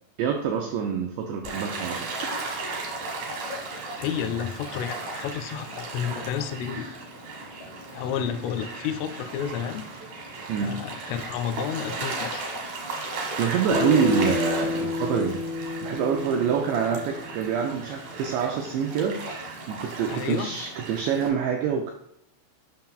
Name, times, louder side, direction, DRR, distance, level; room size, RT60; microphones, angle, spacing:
voice 1, 0.2-2.3 10.5-10.8 13.4-15.5 15.8-21.9, right 7 dB, 90° right, 3 dB, 2.4 m, -26 dB
Gull seagull / Waves surf, 1.4-21.3, right 3 dB, 70° right, 1.9 m, -36 dB
voice 2, 4.0-6.9 7.9-9.9 10.6-12.5 20.1-20.6, left 8 dB, 85° left, 7 dB, 3.2 m, -31 dB
Bass guitar, 13.7-18.1, left 4 dB, 5° right, 0.4 m, -31 dB
9.0 x 5.7 x 2.4 m, 0.74 s
omnidirectional pair, 5.7 m